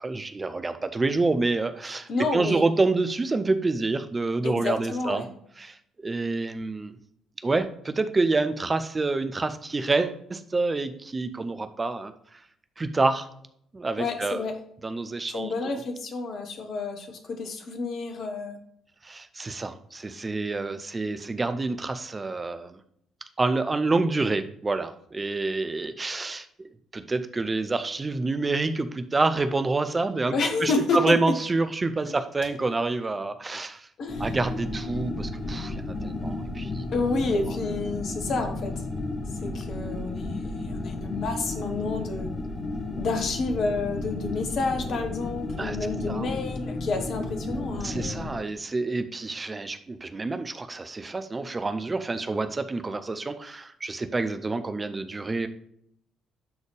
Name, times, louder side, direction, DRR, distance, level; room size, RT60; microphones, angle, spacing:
voice 1, 0.0-5.2 5.6-7.0 7.4-12.1 12.8-13.3 13.7-14.5 14.8-15.5 19.0-22.8 23.4-26.7 26.9-33.9 34.2-36.9 45.6-45.8 46.1-46.3 47.8-55.5, right 3 dB, 25° right, 9 dB, 0.7 m, -27 dB
voice 2, 2.1-2.6 4.4-5.3 14.0-14.5 15.3-18.6 30.3-31.2 34.0-34.4 36.9-38.7 39.4-42.5 43.0-48.2, left 3 dB, 55° left, 5 dB, 1.4 m, -29 dB
sound 1, 34.1-48.3, left 2 dB, 30° left, 1.4 m, -33 dB
11.5 x 4.1 x 3.3 m, 0.69 s
figure-of-eight pair, 45°, 0 cm